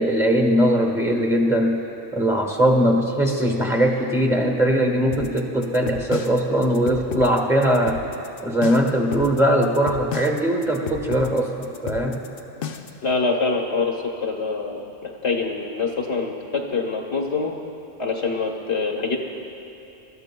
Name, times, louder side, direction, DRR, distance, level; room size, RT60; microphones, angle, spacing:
voice 1, 0.0-1.8 2.1-8.0 8.4-12.2, equal, 5° right, 0 dB, 1.4 m, -20 dB
sound 1, 5.1-13.0, left 6 dB, 60° left, 0.8 m, -33 dB
voice 2, 13.0-17.5 18.0-19.2, left 4 dB, 90° left, 1 dB, 1.5 m, -25 dB
25.5 x 13.5 x 2.2 m, 3.0 s
omnidirectional pair, 1.1 m